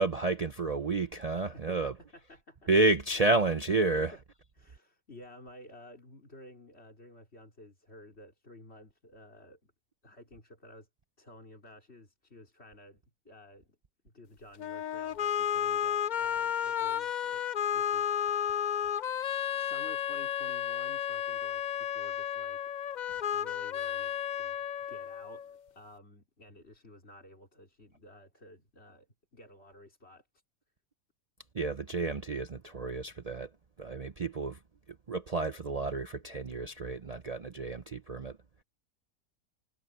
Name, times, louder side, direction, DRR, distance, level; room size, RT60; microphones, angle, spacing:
voice 1, 0.0-1.9 2.7-4.1 23.1-23.2 31.5-33.5 33.8-34.6 35.1-38.4, right 3 dB, 35° right, 0.6 m, -30 dB
voice 2, 1.5-2.7 4.0-4.2 4.6-9.7 10.0-10.9 11.2-13.7 14.0-17.4 17.7-18.7 19.5-22.6 23.3-29.1 29.3-30.2, left 1 dB, 50° left, 4.5 m, -53 dB
sound 1, 14.6-25.6, left 9 dB, 85° left, 0.4 m, -32 dB
omnidirectional pair, 1.4 m